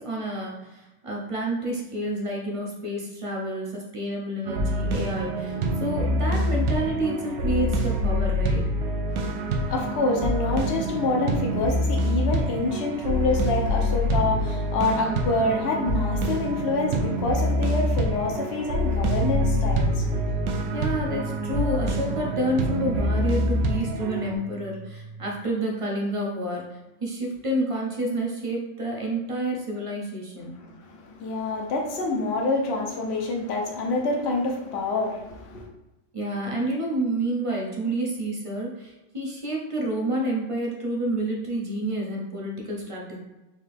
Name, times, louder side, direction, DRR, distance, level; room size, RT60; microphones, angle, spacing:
voice 1, 0.0-8.7 20.7-30.6 36.1-43.2, right 1 dB, 35° right, -1 dB, 0.5 m, -29 dB
sound 1, 4.4-24.3, equal, 85° right, 1.1 m, -26 dB
voice 2, 9.0-20.5 30.5-35.7, left 2 dB, 55° left, 0 dB, 1.0 m, -27 dB
sound 2, 19.0-25.3, right 3 dB, 60° right, 1.4 m, -34 dB
4.3 x 2.8 x 3.4 m, 1.0 s
omnidirectional pair, 1.5 m